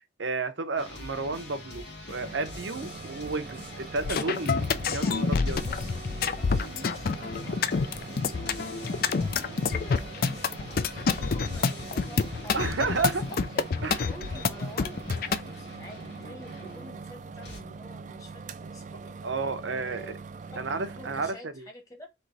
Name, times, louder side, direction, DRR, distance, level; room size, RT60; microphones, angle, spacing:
voice 1, 0.2-5.2 5.4-5.7 12.5-13.2 13.8-14.0 19.2-20.2 20.6-21.5, right 3 dB, 75° right, 0.8 m, -31 dB
sound 1, 0.8-17.6, left 2 dB, 65° left, 2.3 m, -44 dB
sound 2, 2.1-21.3, right 4 dB, 40° right, 0.4 m, -43 dB
voice 2, 2.8-3.2 5.0-5.2 5.6-5.9 6.4-12.6 13.0-19.1 19.8-22.1, equal, 20° left, 1.2 m, -48 dB
sound 3, 4.0-15.4, left 5 dB, 50° left, 0.4 m, -28 dB
4.4 x 3.0 x 4.0 m
head